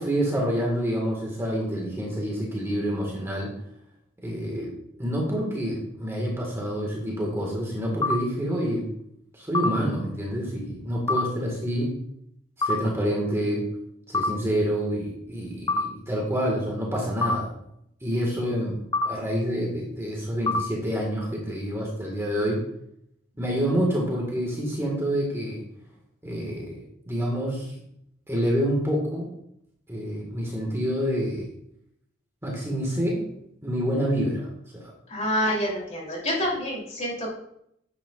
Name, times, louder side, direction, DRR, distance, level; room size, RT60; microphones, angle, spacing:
voice 1, 0.0-3.5 4.2-4.7 5.0-8.9 9.3-11.9 12.6-13.6 14.1-17.6 18.0-22.6 23.4-25.6 26.2-27.7 28.3-29.3 29.9-31.5 32.4-33.2 33.6-34.5 34.7-34.9, equal, 15° right, -2 dB, 1.8 m, -27 dB
sound 1, 8.0-8.2 9.5-9.7 11.1-11.2 12.6-12.8 14.1-14.3 15.7-15.8 17.2-17.4 18.9-19.1 20.5-20.6, left 2 dB, 20° left, 0.4 m, -23 dB
voice 2, 35.1-37.3, equal, 35° left, -3 dB, 3.3 m, -27 dB
10.0 x 8.4 x 2.5 m, 0.75 s
head